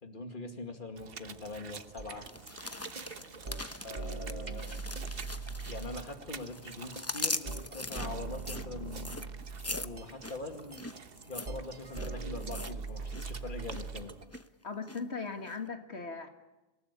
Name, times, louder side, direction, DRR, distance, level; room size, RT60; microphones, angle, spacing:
voice 1, 0.0-2.3 2.9-4.8 5.7-9.2 9.8-10.8 11.2-14.2, left 2 dB, 50° left, 5 dB, 2.4 m, -43 dB
sound 1, 1.0-14.3, right 6 dB, 60° right, 1.3 m, -50 dB
sound 2, 2.0-14.4, right 4 dB, 40° right, 1.4 m, -41 dB
sound 3, 2.3-6.1 6.3-13.3 13.5-13.9 14.3-15.0 15.5-15.6, left 2 dB, 15° left, 0.8 m, -41 dB
voice 2, 14.6-16.3, left 4 dB, 85° left, 5 dB, 2.3 m, -38 dB
27.0 x 18.5 x 9.8 m, 1.0 s
omnidirectional pair, 1.1 m